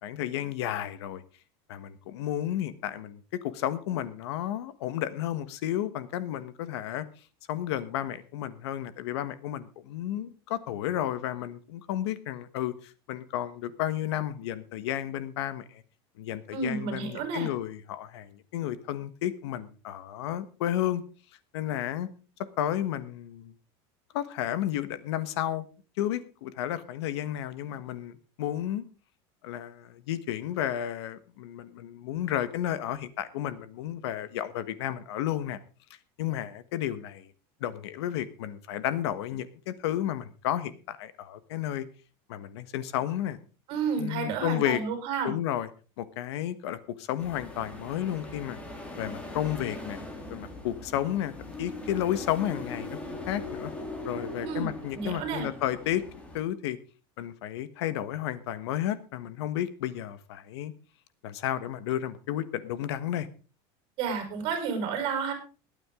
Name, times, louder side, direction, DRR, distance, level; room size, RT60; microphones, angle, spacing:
voice 1, 0.0-1.2 1.7-7.0 7.5-15.8 16.2-21.0 21.5-22.1 22.6-23.5 24.1-25.7 26.0-28.8 29.4-35.6 36.2-37.3 37.6-41.9 42.3-43.4 44.0-44.8 45.2-45.7 46.0-48.6 49.0-50.0 50.3-53.7 54.0-56.0 56.3-56.8 57.2-60.7 61.2-63.3, left 12 dB, 85° left, 14 dB, 1.4 m, -32 dB
voice 2, 16.5-17.5 43.7-45.3 54.4-54.7 54.9-55.5 64.0-65.3, right 6 dB, 40° right, 6 dB, 5.0 m, -31 dB
sound 1, 47.2-56.4, left 2 dB, 10° left, 2.1 m, -40 dB
21.0 x 9.1 x 3.7 m, 0.35 s
cardioid pair, 175°, 14 cm